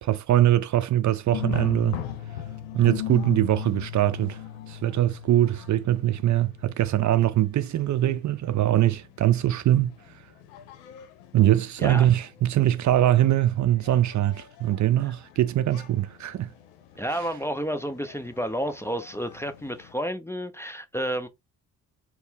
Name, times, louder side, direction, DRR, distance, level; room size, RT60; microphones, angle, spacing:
voice 1, 0.0-2.0 2.7-4.4 4.7-9.9 11.3-16.5, right 13 dB, 45° right, 0.5 m, -22 dB
sound 1, 1.3-19.9, left 11 dB, 80° left, 0.7 m, -40 dB
voice 2, 11.8-12.1 15.0-15.1 17.0-21.3, equal, 5° left, 0.5 m, -31 dB
4.2 x 2.0 x 3.4 m
hypercardioid pair, 45°, 40 cm